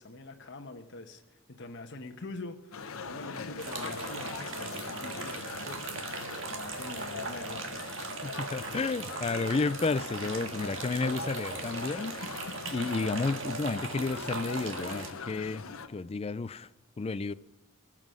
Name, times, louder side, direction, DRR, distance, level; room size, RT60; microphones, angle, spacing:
voice 1, 0.0-6.1 6.5-7.8, left 2 dB, 55° left, 1.1 m, -44 dB
sound 1, 2.7-15.9, left 4 dB, 80° left, 1.0 m, -42 dB
sound 2, 3.6-15.1, right 4 dB, 65° right, 1.6 m, -39 dB
voice 2, 8.2-16.7 17.0-17.3, left 3 dB, 30° left, 0.4 m, -32 dB
19.5 x 7.5 x 6.3 m
head